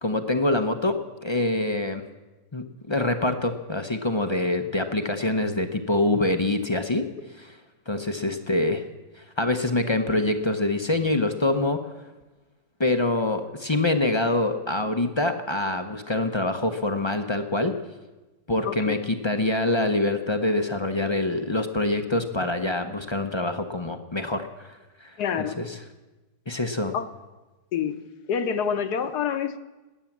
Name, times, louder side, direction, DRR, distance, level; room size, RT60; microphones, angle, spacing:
voice 1, 0.0-2.0 2.5-7.1 7.4-7.5 7.9-8.8 9.4-11.8 12.8-17.7 18.5-25.8 26.5-26.9, left 2 dB, 40° left, 6 dB, 0.4 m, -25 dB
voice 2, 25.2-25.6 26.9-27.1 27.7-28.0 28.3-29.6, left 7 dB, 70° left, 10 dB, 1.4 m, -27 dB
20.0 x 9.2 x 7.3 m, 1.2 s
omnidirectional pair, 1.9 m